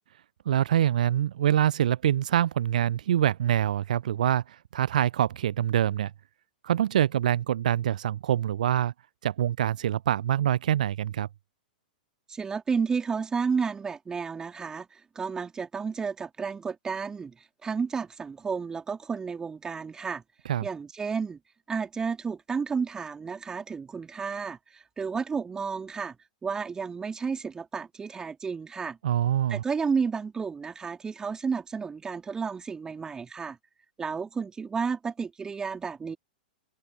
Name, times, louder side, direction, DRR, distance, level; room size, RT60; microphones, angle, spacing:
voice 1, 0.5-6.1 6.6-8.9 9.2-11.3 20.5-20.7 29.0-29.6, right 11 dB, 60° right, 0.6 m, -25 dB
voice 2, 12.3-20.2 20.6-21.4 21.7-26.2 26.4-29.0 29.5-33.6 34.0-36.2, right 5 dB, 15° right, 3.6 m, -32 dB
open air
figure-of-eight pair, 100°, 5 cm